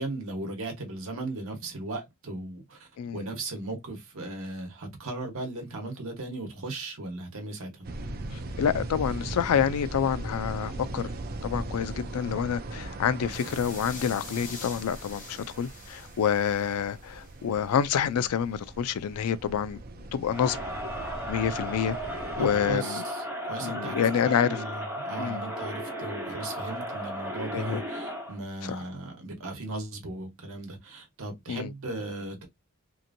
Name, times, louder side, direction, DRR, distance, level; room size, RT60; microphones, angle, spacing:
voice 1, 0.0-7.9 22.4-32.4, right 2 dB, 65° right, 1.1 m, -37 dB
sound 1, 7.8-22.8, right 2 dB, 45° right, 0.4 m, -39 dB
voice 2, 8.3-11.1 11.4-19.8 20.1-20.6 21.3-22.0 22.4-23.0 23.6-24.5 25.2-25.4 27.5-27.8 28.6-28.8 31.5-31.7, left 8 dB, 75° left, 0.3 m, -28 dB
sound 2, 13.3-17.3, left 4 dB, 35° left, 0.9 m, -45 dB
Crowd, 20.3-28.4, equal, 10° right, 1.1 m, -35 dB
2.8 x 2.5 x 2.5 m
head